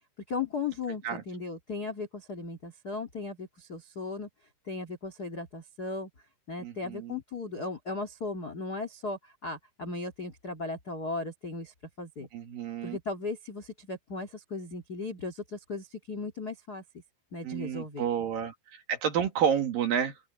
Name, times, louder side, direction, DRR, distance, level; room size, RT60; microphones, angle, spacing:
voice 1, 0.3-4.3 4.6-6.1 6.5-12.3 12.8-16.8 17.3-18.1, left 3 dB, 70° left, 0.9 m, -37 dB
voice 2, 6.6-7.2 12.3-13.0 17.4-20.2, right 8 dB, 55° right, 3.0 m, -30 dB
open air
omnidirectional pair, 5.6 m